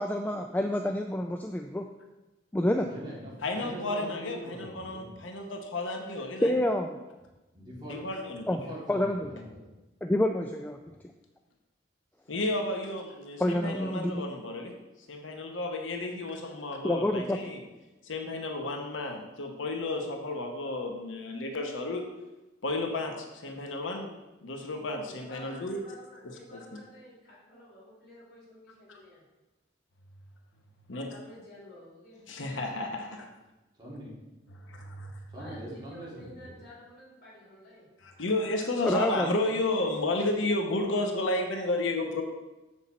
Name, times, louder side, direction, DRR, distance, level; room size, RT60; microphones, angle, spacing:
voice 1, 0.0-1.9 2.5-2.9 6.4-6.9 8.5-8.6 8.9-9.3 10.0-10.9 13.4-14.3 16.8-17.4 38.8-39.4, left 1 dB, 10° left, 4 dB, 0.3 m, -28 dB
voice 2, 2.9-5.1 7.5-8.0 8.3-9.7 10.8-10.9 15.0-15.1 33.7-34.1 35.3-36.5, equal, 25° right, -6 dB, 2.7 m, -43 dB
voice 3, 3.4-6.5 7.9-8.4 12.3-14.7 15.1-17.6 18.0-22.0 22.6-24.1 24.4-25.8 26.2-26.6 28.9-29.0 30.9-31.1 32.3-33.3 38.0-42.2, left 2 dB, 85° left, 3 dB, 0.9 m, -32 dB
voice 4, 25.0-29.2 30.9-32.2 35.4-37.9 38.4-39.6, equal, 55° left, -5 dB, 3.0 m, -51 dB
7.2 x 6.4 x 4.2 m, 1.1 s
head